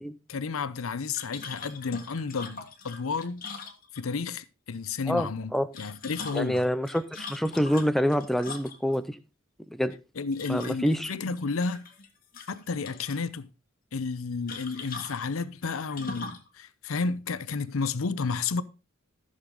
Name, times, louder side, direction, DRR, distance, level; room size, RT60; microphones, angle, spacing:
voice 1, 0.3-3.4 3.9-5.5 5.8-6.6 10.2-11.8 12.5-13.5 13.9-18.6, left 4 dB, 90° left, 0.7 m, -31 dB
sound 1, 1.1-4.3 5.5-9.0 10.3-11.0 11.4-12.1 12.3-13.2 14.5-16.5, left 4 dB, 45° left, 1.7 m, -42 dB
voice 2, 5.1-5.7 6.3-9.2 9.7-10.0 10.5-11.1, equal, ahead, 0.6 m, -26 dB
14.5 x 6.6 x 3.8 m
head